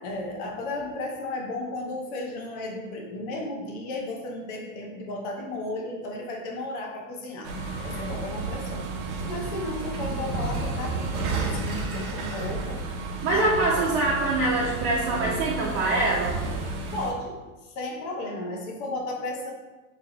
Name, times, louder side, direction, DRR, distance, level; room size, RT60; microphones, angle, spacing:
voice 1, 0.0-7.5 7.8-8.9 9.3-12.8 13.2-13.8 16.9-17.3 17.6-19.5, left 2 dB, 60° left, 0 dB, 1.1 m, -34 dB
sound 1, 7.4-17.1, right 3 dB, 90° right, 0.9 m, -31 dB
voice 2, 13.2-16.4, right 2 dB, 60° right, -5 dB, 0.8 m, -24 dB
3.4 x 3.1 x 3.9 m, 1.2 s
supercardioid pair, 115°, 42 cm